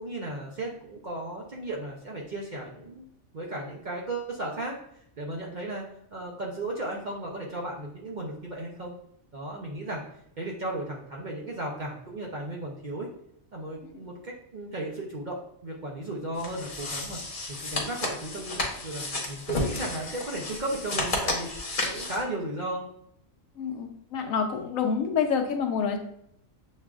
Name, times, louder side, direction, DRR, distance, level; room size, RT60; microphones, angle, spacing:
voice 1, 0.0-3.0 3.3-4.8 5.2-5.9 6.1-8.9 9.3-10.0 10.4-13.1 13.5-17.2 17.5-22.8, right 1 dB, 50° right, -3 dB, 0.5 m, -35 dB
sound 1, 16.4-22.2, left 2 dB, 40° left, 1.0 m, -32 dB
voice 2, 23.6-26.0, left 6 dB, 75° left, 4 dB, 1.0 m, -27 dB
7.3 x 2.4 x 2.3 m, 0.74 s
omnidirectional pair, 1.4 m